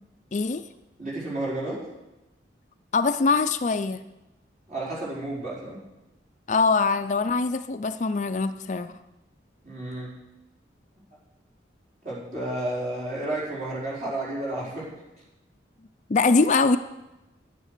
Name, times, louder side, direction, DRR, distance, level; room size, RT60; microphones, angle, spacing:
voice 1, 0.3-0.6 2.9-4.0 6.5-8.9 16.1-16.8, left 4 dB, 40° left, 10 dB, 0.4 m, -23 dB
voice 2, 1.0-1.8 4.7-5.8 9.6-10.1 12.0-14.9, right 1 dB, 40° right, -6 dB, 4.8 m, -31 dB
10.0 x 10.0 x 6.7 m, 0.98 s
head